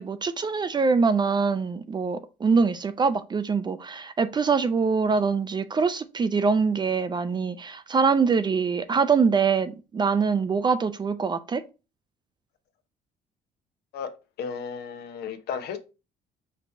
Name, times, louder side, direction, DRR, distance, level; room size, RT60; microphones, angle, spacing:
voice 1, 0.0-11.6, right 5 dB, 25° right, 0.4 m, -24 dB
voice 2, 14.4-15.8, left 6 dB, 70° left, 0.8 m, -34 dB
5.2 x 2.8 x 3.3 m
cardioid pair, 110°, 17 cm